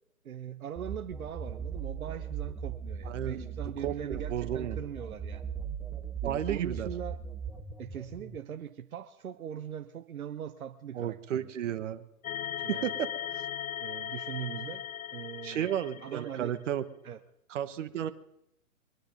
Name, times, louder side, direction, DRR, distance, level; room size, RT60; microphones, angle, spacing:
voice 1, 0.2-5.4 6.2-7.2 7.8-11.8 12.6-13.0 13.8-14.9 15.1-15.7 16.0-16.6 17.0-17.2, right 9 dB, 75° right, 7 dB, 1.0 m, -41 dB
sound 1, 0.8-8.4, right 7 dB, ahead, 0.6 m, -38 dB
voice 2, 3.0-3.5 3.8-4.8 6.2-6.9 10.9-12.1 12.7-13.4 15.4-16.8 17.5-18.1, right 10 dB, 55° right, 10 dB, 1.3 m, -33 dB
sound 2, 12.2-16.5, left 10 dB, 75° left, 0.8 m, -38 dB
23.5 x 10.0 x 5.3 m, 0.80 s
hypercardioid pair, 135°, 43 cm